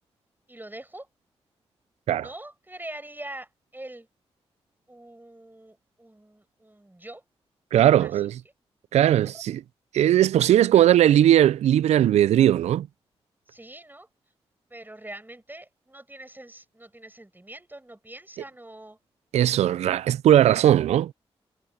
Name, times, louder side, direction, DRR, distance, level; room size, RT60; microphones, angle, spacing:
voice 1, 0.5-1.1 2.1-4.1 4.9-7.2 8.0-8.1 13.5-14.1 14.7-19.0, right 1 dB, 15° right, 7.9 m, -43 dB
voice 2, 7.7-8.4 8.9-9.6 9.9-12.9 19.3-21.1, right 11 dB, 90° right, 0.4 m, -19 dB
supercardioid pair, 45°, 11 cm